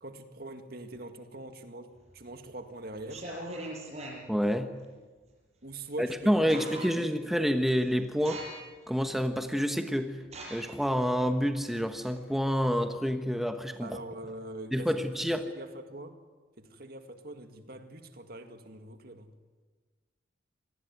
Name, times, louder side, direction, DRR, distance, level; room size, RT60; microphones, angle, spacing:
voice 1, 0.0-3.3 5.6-7.2 13.8-15.1 15.4-16.2 16.6-19.3, right 1 dB, 50° right, 2.2 m, -43 dB
sound 1, 2.0-2.5 3.0-4.2 5.8-5.9 6.2-7.2 7.6-7.9 8.2-8.8 9.3-9.4 10.2-12.6, right 1 dB, 35° right, 6.9 m, -42 dB
voice 2, 4.3-4.7 6.0-8.4 8.9-10.2 10.5-14.0 14.7-15.4, equal, ahead, 1.2 m, -28 dB
26.5 x 19.5 x 9.6 m
head